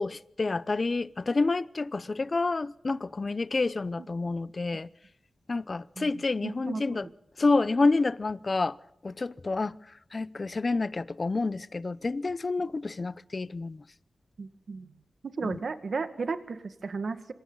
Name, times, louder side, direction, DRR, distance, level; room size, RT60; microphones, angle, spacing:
voice 1, 0.0-4.9 5.5-7.1 7.4-8.8 9.0-9.8 10.1-13.8 15.4-15.6, left 3 dB, 40° left, 0.7 m, -28 dB
voice 2, 6.0-7.1 14.4-14.9 15.2-17.3, right 4 dB, 65° right, 1.8 m, -35 dB
26.5 x 26.5 x 4.0 m
wide cardioid pair, 130°, 0 cm